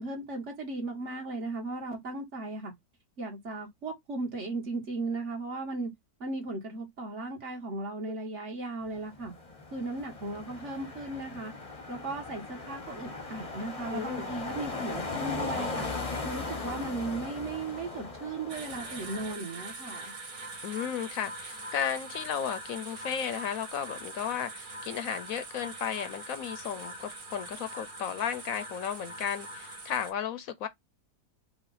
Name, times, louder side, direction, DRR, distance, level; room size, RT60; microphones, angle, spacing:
voice 1, 0.0-2.7 3.2-5.9 6.2-9.3 9.7-11.5 11.9-15.9 16.2-20.1, right 2 dB, 50° right, 1.9 m, -36 dB
sound 1, 9.0-19.3, left 3 dB, 30° left, 0.8 m, -38 dB
voice 2, 13.9-14.3 20.6-30.7, left 8 dB, 70° left, 1.0 m, -34 dB
sound 2, 18.5-30.1, right 2 dB, 65° right, 2.1 m, -43 dB
4.9 x 2.4 x 3.9 m
omnidirectional pair, 1.6 m